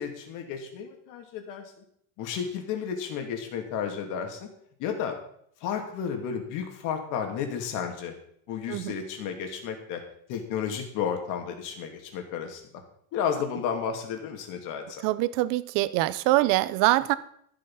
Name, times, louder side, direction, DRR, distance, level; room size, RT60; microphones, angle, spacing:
voice 1, 0.0-1.6 2.2-4.5 4.8-5.2 5.6-8.1 8.5-10.0 10.3-12.6 13.1-15.0, left 7 dB, 60° left, 4 dB, 2.7 m, -32 dB
voice 2, 15.0-17.2, right 17 dB, 65° right, 16 dB, 0.8 m, -24 dB
13.5 x 8.2 x 5.7 m, 0.68 s
cardioid pair, 175°, 35 cm